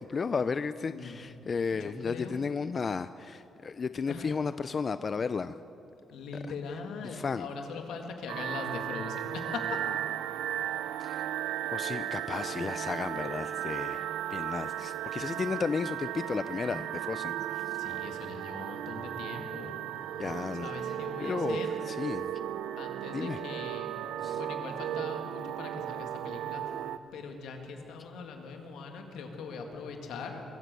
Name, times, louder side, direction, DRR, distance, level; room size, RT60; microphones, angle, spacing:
voice 1, 0.1-5.6 6.4-6.5 7.0-7.5 11.0-11.3 11.7-17.7 20.2-21.6 21.9-22.3 23.1-23.4 24.2-24.4, left 5 dB, 40° left, 13 dB, 0.4 m, -34 dB
voice 2, 0.8-1.2 1.7-2.4 4.1-4.3 6.1-9.8 17.8-19.8 20.6-21.8 22.8-24.1 24.3-26.6 27.1-30.4, left 5 dB, 80° left, 3 dB, 1.9 m, -41 dB
sound 1, 8.3-27.0, right 11 dB, 85° right, 0.4 m, -35 dB
22.0 x 8.0 x 7.7 m, 2.8 s
cardioid pair, 90°, 0 cm